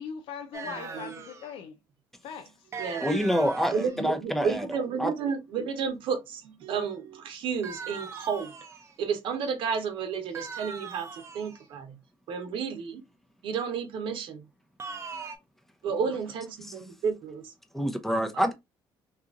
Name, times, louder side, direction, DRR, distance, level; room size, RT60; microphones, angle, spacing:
voice 1, 0.0-1.8 2.2-2.7 15.9-16.1, left 7 dB, 80° left, 0.4 m, -41 dB
sound 1, 0.5-1.5 2.7-4.0 7.6-9.0 10.3-11.6 14.8-15.4, right 5 dB, 35° right, 0.6 m, -40 dB
voice 2, 0.7-1.2 2.8-3.0 3.7-8.6 9.0-11.9 12.3-13.0 13.4-14.4 15.8-17.5 18.3-18.5, right 6 dB, 70° right, 0.9 m, -32 dB
voice 3, 3.0-4.7 5.0-5.1 17.7-18.5, equal, 5° left, 0.6 m, -26 dB
2.9 x 2.4 x 3.7 m
cardioid pair, 115°, 9 cm